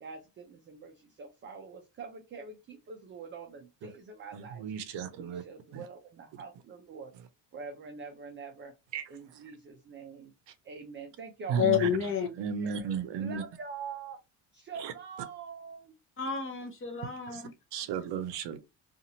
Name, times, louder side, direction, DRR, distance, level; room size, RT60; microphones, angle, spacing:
voice 1, 0.0-4.7 5.1-7.1 7.5-8.7 9.1-10.3 10.6-12.1 12.6-12.9 13.2-14.2 14.5-15.9, right 5 dB, 30° right, 0.4 m, -45 dB
voice 2, 4.3-5.4 5.7-5.9 8.9-9.4 11.5-11.9 12.4-13.4 14.8-14.9 17.3-17.4 17.7-18.6, right 7 dB, 65° right, 0.6 m, -34 dB
voice 3, 11.6-12.3 16.2-17.5, left 8 dB, 30° left, 0.6 m, -29 dB
2.8 x 2.4 x 2.7 m
cardioid pair, 145°, 46 cm